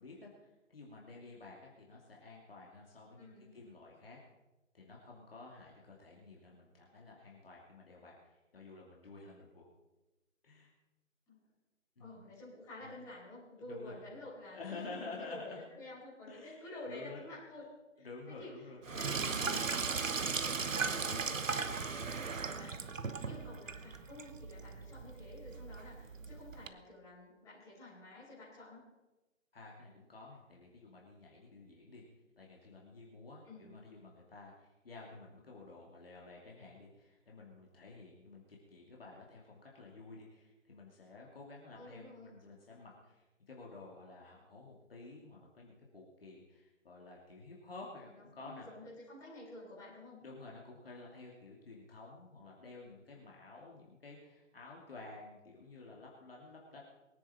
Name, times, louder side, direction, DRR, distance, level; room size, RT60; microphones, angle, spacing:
voice 1, 0.0-4.2 4.7-9.7 10.4-10.7 12.0-12.2 12.8-13.0 13.6-14.0 14.5-15.6 16.3-16.6 16.9-17.2 18.0-19.0 19.4-19.7 29.5-32.0 32.4-48.7 50.2-56.8, left 3 dB, 45° left, -2 dB, 2.8 m, -51 dB
voice 2, 3.2-3.5 11.3-11.4 12.0-17.7 18.0-22.9 23.2-28.8 33.4-33.8 41.7-42.3 48.0-50.2, left 1 dB, 10° left, -10 dB, 4.9 m, -51 dB
Sink (filling or washing), 18.8-26.7, right 5 dB, 75° right, 1.1 m, -37 dB
22.5 x 10.0 x 4.4 m, 1.0 s
figure-of-eight pair, 160°, 39 cm